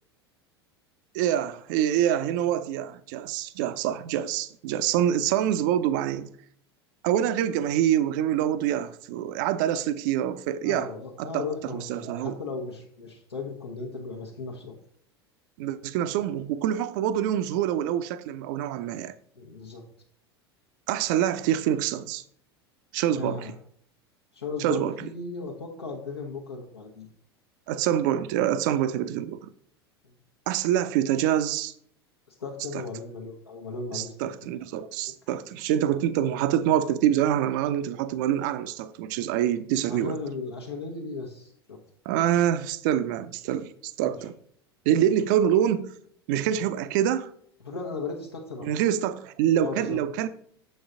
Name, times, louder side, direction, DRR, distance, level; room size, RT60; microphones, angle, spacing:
voice 1, 1.1-6.3 7.0-10.9 11.2-11.4 11.7-12.4 15.6-19.1 20.9-22.2 22.9-23.5 24.6-24.9 27.7-29.5 30.5-31.7 33.9-40.2 42.1-44.3 44.9-45.9 46.3-47.3 48.6-50.3, right 10 dB, 50° right, 0.5 m, -26 dB
voice 2, 10.6-14.8 19.4-19.8 23.1-23.5 24.3-27.1 30.0-30.1 32.3-34.5 39.9-41.8 44.0-44.2 47.6-48.7 49.6-50.0, left 4 dB, 75° left, 1.0 m, -36 dB
6.8 x 5.3 x 3.7 m
figure-of-eight pair, 80°, 13 cm